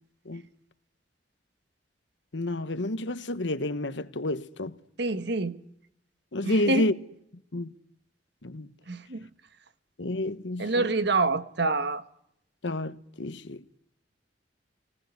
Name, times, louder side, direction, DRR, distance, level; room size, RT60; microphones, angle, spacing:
voice 1, 2.3-4.7 6.3-6.9 7.5-7.7 8.4-8.7 10.0-10.9 12.6-13.6, left 1 dB, 70° left, 1.2 m, -30 dB
voice 2, 5.0-5.6 6.4-6.9 8.9-9.2 10.6-12.0, right 3 dB, 65° right, 1.4 m, -26 dB
26.0 x 20.0 x 9.6 m
head